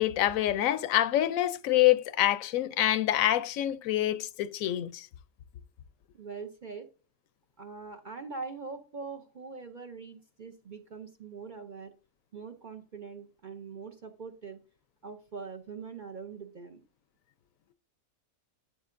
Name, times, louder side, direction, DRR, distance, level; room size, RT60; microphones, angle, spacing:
voice 1, 0.0-5.1, left 13 dB, 75° left, 1.0 m, -26 dB
voice 2, 6.1-6.9 7.6-11.9 12.3-14.6 15.0-16.8, right 5 dB, 50° right, 0.6 m, -42 dB
12.0 x 7.6 x 2.5 m
omnidirectional pair, 1.5 m